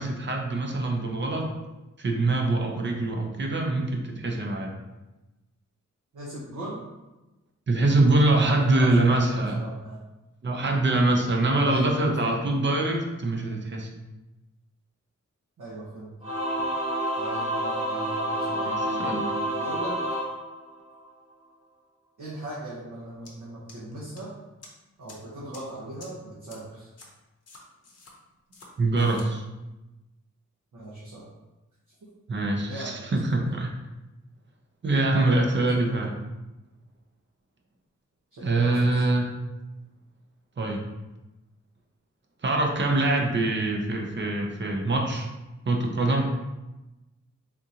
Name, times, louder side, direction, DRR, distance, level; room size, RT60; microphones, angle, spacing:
voice 1, 0.0-1.5 2.0-4.7 7.7-9.6 10.4-13.9 18.6-19.2 28.8-29.4 32.3-33.7 34.8-36.1 38.4-39.3 40.6-40.8 42.4-45.3 45.6-46.3, right 2 dB, 40° right, 1 dB, 0.5 m, -24 dB
voice 2, 6.1-6.8 8.4-10.0 11.6-12.4 15.6-16.1 17.2-19.0 19.5-20.0 22.2-24.3 25.0-26.9 30.7-31.2 32.7-33.1 35.2-35.9 38.3-39.0, right 1 dB, 85° right, -8 dB, 0.8 m, -39 dB
Singing / Musical instrument, 16.2-21.1, equal, 20° right, 0.9 m, -29 dB
sound 1, 23.2-23.3 23.7-24.2 24.6-24.7 25.1-25.2 25.5-25.6 26.0-26.1 26.5-26.6 27.0-27.1 27.5-28.1 28.5-28.7 29.0-29.3, left 3 dB, 55° left, 0.7 m, -48 dB
3.6 x 2.5 x 2.7 m, 1.1 s
wide cardioid pair, 130°, 30 cm